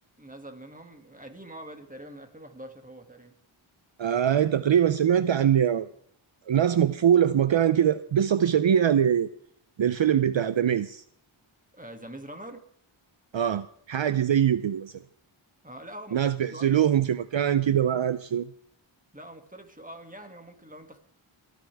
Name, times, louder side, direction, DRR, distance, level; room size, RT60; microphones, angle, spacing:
voice 1, 0.2-3.3 11.7-12.6 15.6-16.2 16.5-16.8 19.1-21.0, right 1 dB, 15° right, 5 dB, 2.3 m, -44 dB
voice 2, 4.0-5.9 6.5-9.3 9.8-11.0 13.3-14.9 16.1-18.5, right 9 dB, 65° right, 14 dB, 0.6 m, -23 dB
25.5 x 9.6 x 3.5 m, 0.63 s
wide cardioid pair, 50°, 49 cm